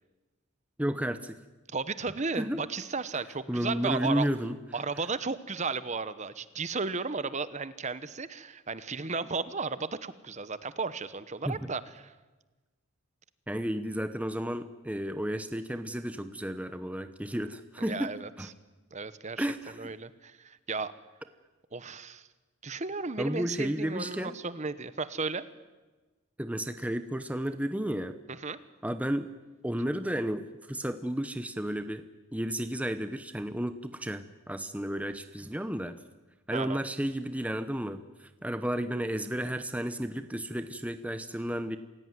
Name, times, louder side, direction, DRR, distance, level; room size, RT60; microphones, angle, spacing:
voice 1, 0.8-1.4 2.3-2.6 3.5-4.6 11.5-11.6 13.5-18.5 19.4-19.9 23.2-24.3 26.4-28.2 28.8-29.3 29.6-32.0 32.3-36.0 36.5-41.8, equal, 5° right, 10 dB, 0.8 m, -32 dB
voice 2, 1.7-4.3 4.7-12.1 17.8-18.5 18.9-19.5 19.8-20.9 21.7-22.3 22.6-25.4 28.3-28.6 36.5-36.8, right 4 dB, 35° right, 14 dB, 1.0 m, -34 dB
27.0 x 16.5 x 9.7 m, 1.2 s
head